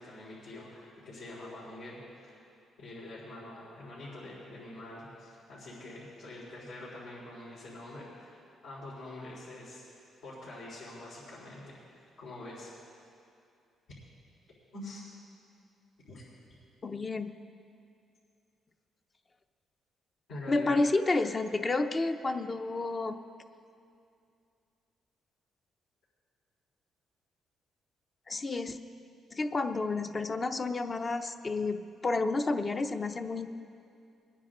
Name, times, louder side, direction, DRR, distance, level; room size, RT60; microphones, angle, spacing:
voice 1, 0.0-2.4 2.8-8.4 8.6-12.7 14.7-15.1 16.1-16.2 20.3-20.8, left 1 dB, 80° left, -11 dB, 4.0 m, -45 dB
voice 2, 16.8-17.3 20.5-23.2 28.3-28.8 29.3-33.5, left 3 dB, 30° left, 7 dB, 0.7 m, -30 dB
21.5 x 9.8 x 3.8 m, 2.5 s
cardioid pair, 90°, 0 cm